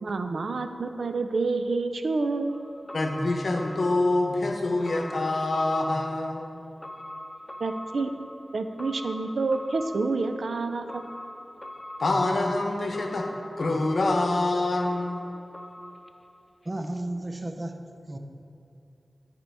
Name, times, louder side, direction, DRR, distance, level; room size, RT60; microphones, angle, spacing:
voice 1, 0.0-2.5 7.6-8.1 8.5-11.0, right 3 dB, 80° right, 8 dB, 0.4 m, -28 dB
sound 1, 2.5-16.7 17.0-17.1, left 1 dB, 25° left, 0.4 m, -43 dB
voice 2, 2.9-6.6 12.0-13.3 13.6-15.2, left 2 dB, 75° left, 3 dB, 0.8 m, -26 dB
voice 3, 16.6-18.2, right 1 dB, 35° right, 5 dB, 0.6 m, -34 dB
11.0 x 4.4 x 3.4 m, 2.8 s
cardioid pair, 50°, 0 cm